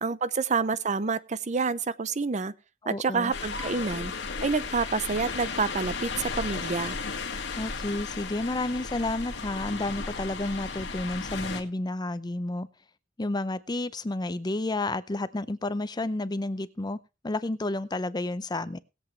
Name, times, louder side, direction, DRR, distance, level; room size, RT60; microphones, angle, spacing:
voice 1, 0.0-2.5 2.9-4.1 4.4-7.0, right 4 dB, 40° right, 0.6 m, -28 dB
voice 2, 2.8-3.3 7.6-12.7 13.2-17.0 17.2-18.8, left 2 dB, 20° left, 0.5 m, -31 dB
sound 1, 3.3-11.6, left 4 dB, 65° left, 2.1 m, -35 dB
20.0 x 7.9 x 3.2 m
head